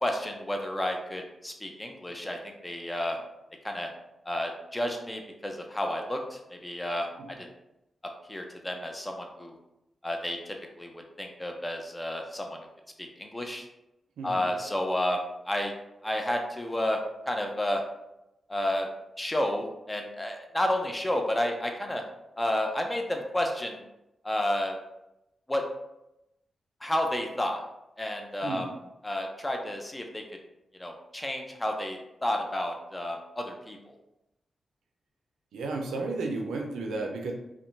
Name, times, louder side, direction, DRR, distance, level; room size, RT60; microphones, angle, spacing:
voice 1, 0.0-3.2 3.6-3.9 4.3-7.1 7.4-7.5 8.3-9.5 10.0-10.9 11.2-12.6 13.0-13.7 14.2-15.7 16.0-17.0 17.3-17.8 18.5-18.9 19.2-22.0 22.4-23.8 24.2-24.8 25.5-25.6 26.8-27.6 28.0-28.7 29.0-30.2 30.8-33.8, left 1 dB, 20° left, 3 dB, 0.5 m, -31 dB
voice 2, 14.2-14.5 28.4-28.7 35.5-37.3, right 3 dB, 85° right, 1 dB, 0.3 m, -33 dB
2.7 x 2.1 x 2.5 m, 0.89 s
supercardioid pair, 40°, 0 cm